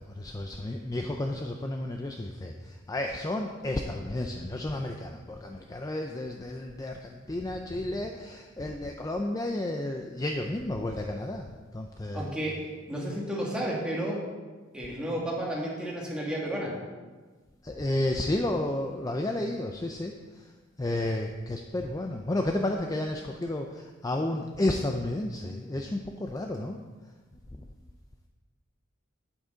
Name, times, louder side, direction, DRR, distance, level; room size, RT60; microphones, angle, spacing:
voice 1, 0.2-12.3 17.6-20.5 20.8-26.8 27.5-27.6, left 1 dB, 20° left, 3 dB, 0.5 m, -32 dB
voice 2, 12.1-12.5 12.9-14.2 14.7-16.7, right 1 dB, 5° right, -5 dB, 2.1 m, -32 dB
8.9 x 8.5 x 3.9 m, 1.3 s
head